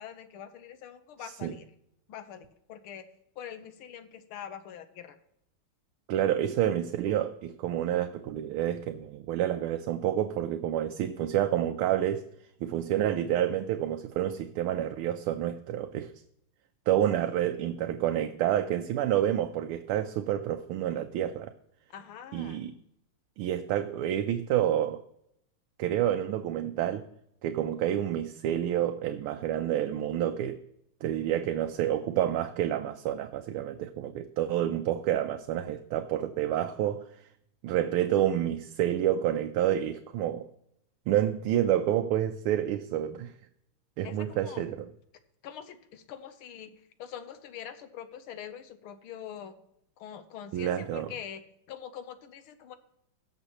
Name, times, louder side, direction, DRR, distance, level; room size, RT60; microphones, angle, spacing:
voice 1, 0.0-1.7 2.1-3.0 3.4-5.2 21.9-22.6 44.0-44.6 45.4-46.7 47.0-49.5 50.0-51.4 51.7-52.8, left 9 dB, 80° left, 1.7 m, -44 dB
voice 2, 1.2-1.5 6.1-12.3 12.6-16.1 16.9-21.5 22.3-22.7 23.4-25.0 25.8-27.1 27.4-30.6 31.0-37.1 37.6-40.5 41.1-43.3 44.0-44.9 50.5-51.1, right 11 dB, 90° right, 1.5 m, -29 dB
17.5 x 6.8 x 3.0 m
omnidirectional pair, 2.3 m